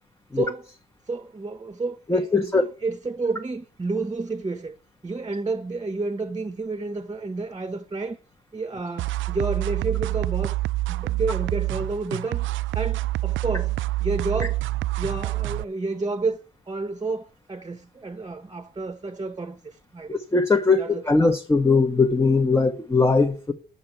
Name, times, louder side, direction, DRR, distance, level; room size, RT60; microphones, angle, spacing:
voice 1, 0.3-0.6 1.1-4.8 5.0-8.2 8.5-10.6 10.9-14.6 15.0-16.4 16.7-20.2 20.7-21.0, right 3 dB, 20° right, 1.2 m, -30 dB
voice 2, 2.1-2.6 20.1-23.5, left 3 dB, 15° left, 1.4 m, -20 dB
sound 1, 9.0-15.6, right 18 dB, 75° right, 0.4 m, -27 dB
9.6 x 5.8 x 8.0 m
cardioid pair, 90°, 20 cm